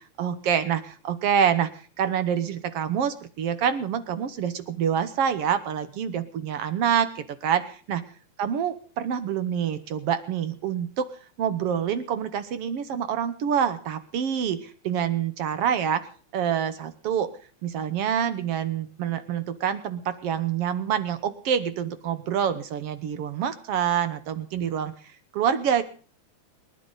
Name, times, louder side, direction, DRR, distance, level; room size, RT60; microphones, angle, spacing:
voice 1, 0.0-8.0 8.4-11.1 11.4-16.0 16.3-17.3 17.6-24.9 25.3-25.8, right 8 dB, 65° right, 12 dB, 1.6 m, -26 dB
30.0 x 10.5 x 4.0 m, 0.41 s
omnidirectional pair, 3.6 m